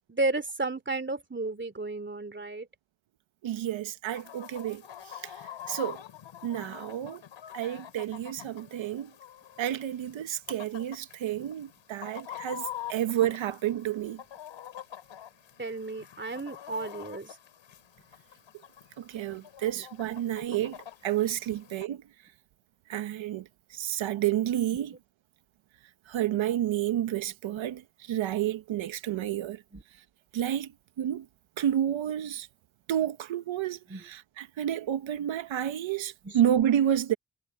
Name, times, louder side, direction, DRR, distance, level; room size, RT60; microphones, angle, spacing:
voice 1, 0.1-2.7 15.6-17.3 19.8-19.9 29.7-29.8 33.9-34.0 36.2-36.4, right 2 dB, 25° right, 2.9 m, -33 dB
voice 2, 3.4-5.4 5.7-6.0 6.4-7.2 7.5-9.1 9.6-14.2 19.0-22.0 22.9-24.9 26.1-29.6 30.3-30.7 31.0-31.3 31.6-32.5 32.9-37.1, right 11 dB, 90° right, 1.2 m, -30 dB
Chicken rooster, 4.1-21.9, left 11 dB, 90° left, 7.6 m, -46 dB
cardioid pair, 50°, 45 cm